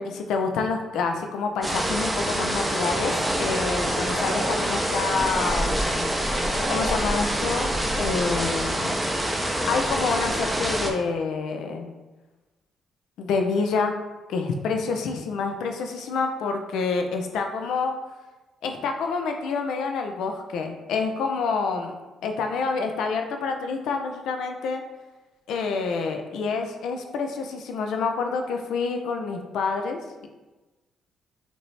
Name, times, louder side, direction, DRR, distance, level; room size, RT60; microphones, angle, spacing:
voice 1, 0.0-6.1 6.7-8.9 9.5-11.9 13.2-13.9 14.3-17.9 18.6-21.9 22.2-24.8 25.5-30.0, left 4 dB, 80° left, 4 dB, 0.4 m, -27 dB
sound 1, 1.6-10.9, right 1 dB, 10° right, 0.5 m, -26 dB
sound 2, 2.4-4.5 4.8-6.9, left 1 dB, 65° left, 1.3 m, -35 dB
5.1 x 2.0 x 3.2 m, 1.2 s
cardioid pair, 90°, 0 cm